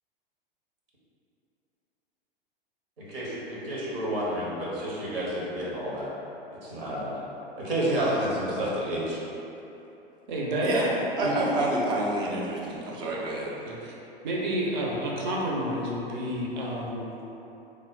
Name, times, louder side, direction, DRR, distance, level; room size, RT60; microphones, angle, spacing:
voice 1, 3.0-6.1 6.6-7.2 7.6-9.2, right 1 dB, 75° right, -7 dB, 1.1 m, -30 dB
voice 2, 10.3-10.7 11.2-11.3 13.7-13.9 14.2-17.0, right 1 dB, 50° right, -3 dB, 0.7 m, -30 dB
voice 3, 11.2-13.5, right 1 dB, 15° right, -4 dB, 0.4 m, -28 dB
3.2 x 2.0 x 3.8 m, 3.0 s
figure-of-eight pair, 95°, 29 cm